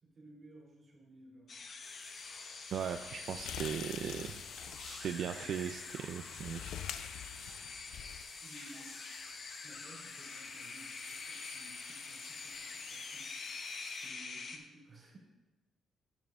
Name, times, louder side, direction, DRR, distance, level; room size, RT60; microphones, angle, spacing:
voice 1, 0.0-1.5 8.4-9.0 9.6-13.6 13.9-15.2, right 2 dB, 30° right, -3 dB, 2.3 m, -57 dB
sound 1, 1.5-14.6, left 4 dB, 40° left, 0.8 m, -46 dB
sound 2, 1.8-14.1, left 2 dB, 65° left, 2.3 m, -55 dB
sound 3, 2.7-8.2, left 9 dB, 80° left, 0.4 m, -46 dB
voice 2, 2.7-4.4 4.9-6.7, right 8 dB, 60° right, 7 dB, 0.3 m, -38 dB
9.5 x 6.5 x 3.5 m, 1.1 s
cardioid pair, 140°, 0 cm